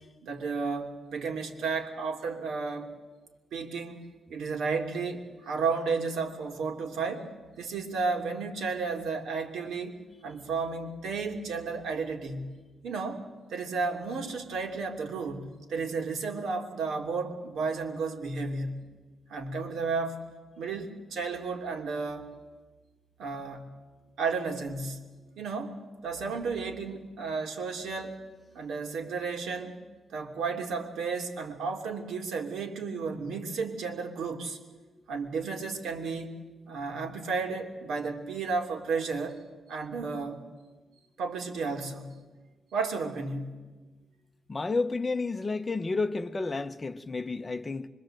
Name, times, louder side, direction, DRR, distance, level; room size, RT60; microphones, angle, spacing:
voice 1, 0.2-2.9 3.5-4.0 4.3-7.2 7.6-9.9 10.2-12.6 12.8-18.9 19.3-20.3 20.6-22.3 23.2-23.7 24.2-25.0 25.4-25.8 26.0-28.2 28.5-29.7 30.1-34.6 35.1-36.4 36.7-39.4 39.7-40.4 41.2-42.2 42.7-43.6, right 4 dB, 85° right, 2.9 m, -33 dB
voice 2, 44.5-47.9, left 3 dB, 20° left, 0.8 m, -31 dB
25.0 x 23.5 x 7.7 m
wide cardioid pair, 165°, 0 cm